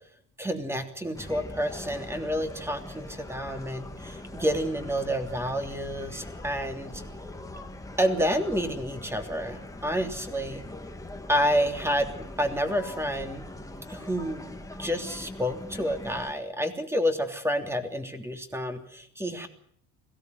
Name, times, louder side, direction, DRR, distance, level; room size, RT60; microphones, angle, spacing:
voice 1, 0.4-7.0 8.0-10.6 11.3-13.4 13.9-14.5 14.8-19.5, equal, 5° right, 6 dB, 3.2 m, -29 dB
sound 1, 1.1-16.3, left 1 dB, 10° left, 2.1 m, -42 dB
22.0 x 17.5 x 9.5 m, 0.65 s
cardioid pair, 120°, 36 cm